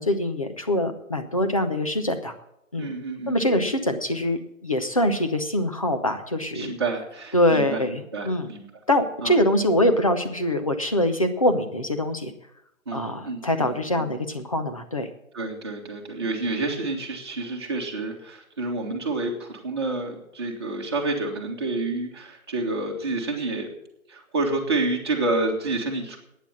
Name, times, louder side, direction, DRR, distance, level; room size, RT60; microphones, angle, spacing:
voice 1, 0.0-2.3 2.7-2.9 3.3-6.7 7.3-8.5 8.9-12.3 12.9-15.1, left 1 dB, 25° left, 7 dB, 0.9 m, -24 dB
voice 2, 2.8-3.7 6.5-7.8 8.1-8.7 9.2-9.4 12.9-14.1 15.3-23.7 24.1-26.2, right 2 dB, 20° right, -1 dB, 1.7 m, -29 dB
11.5 x 9.5 x 7.4 m, 0.84 s
figure-of-eight pair, 170°, 41 cm